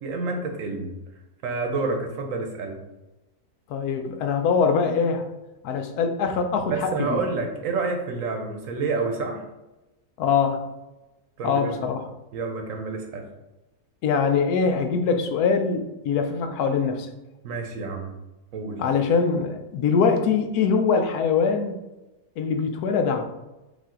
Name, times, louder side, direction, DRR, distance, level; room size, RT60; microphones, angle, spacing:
voice 1, 0.0-1.0 1.4-2.8 6.7-9.4 11.4-11.9 12.3-13.2 17.4-18.1 18.5-18.8, right 3 dB, 65° right, 3 dB, 1.0 m, -29 dB
voice 2, 3.7-5.3 5.6-7.2 10.2-10.6 11.4-12.0 14.0-17.1 18.8-21.7 22.4-23.2, left 5 dB, 80° left, 6 dB, 1.1 m, -23 dB
5.1 x 2.7 x 3.7 m, 1.0 s
omnidirectional pair, 1.7 m